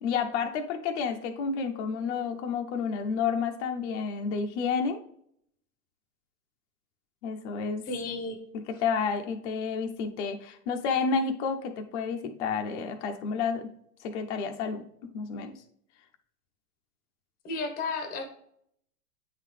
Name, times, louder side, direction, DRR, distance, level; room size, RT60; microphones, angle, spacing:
voice 1, 0.0-5.0 7.2-7.8 8.7-13.7 14.0-14.8 15.1-15.6, left 5 dB, 45° left, 5 dB, 0.8 m, -30 dB
voice 2, 7.8-8.4 17.4-18.2, left 3 dB, 20° left, 6 dB, 1.0 m, -32 dB
8.7 x 3.8 x 3.3 m, 0.69 s
hypercardioid pair, 120°, 48 cm